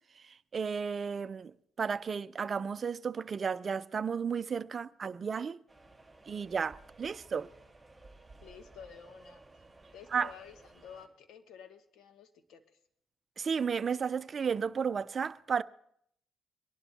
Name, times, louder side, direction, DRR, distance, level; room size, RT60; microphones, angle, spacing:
voice 1, 0.1-5.6 6.3-7.5 10.1-10.3 13.4-15.6, right 6 dB, 45° right, 0.5 m, -33 dB
sound 1, 5.7-11.1, right 2 dB, 5° right, 6.9 m, -56 dB
voice 2, 8.4-9.6 9.9-12.8, left 8 dB, 80° left, 1.4 m, -52 dB
24.0 x 11.5 x 2.8 m
cardioid pair, 90°, 0 cm